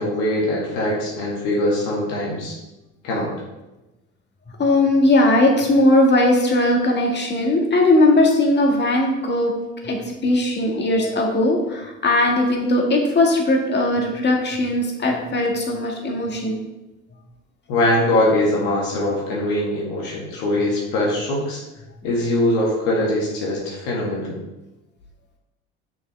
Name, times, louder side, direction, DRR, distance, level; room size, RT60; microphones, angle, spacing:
voice 1, 0.0-2.5 3.0-3.3 17.7-21.6 22.0-24.4, left 1 dB, 70° left, -3 dB, 2.1 m, -22 dB
voice 2, 4.6-9.5 9.8-16.6, left 1 dB, 30° left, 0 dB, 2.0 m, -18 dB
7.0 x 6.2 x 3.5 m, 1.0 s
hypercardioid pair, 70°, 33 cm